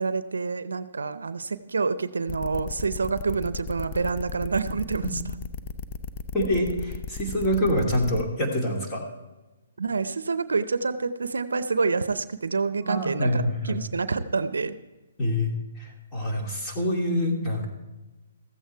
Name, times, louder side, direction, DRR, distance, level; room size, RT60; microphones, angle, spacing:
voice 1, 0.0-5.2 9.8-14.8, right 4 dB, 85° right, 13 dB, 0.6 m, -27 dB
sound 1, 2.3-8.2, left 5 dB, 35° left, 0.8 m, -35 dB
voice 2, 6.3-9.0 12.8-13.8 15.2-15.5 15.8-17.7, left 1 dB, 20° left, -1 dB, 2.7 m, -26 dB
14.5 x 8.2 x 4.5 m, 1.1 s
hypercardioid pair, 145°, 0 cm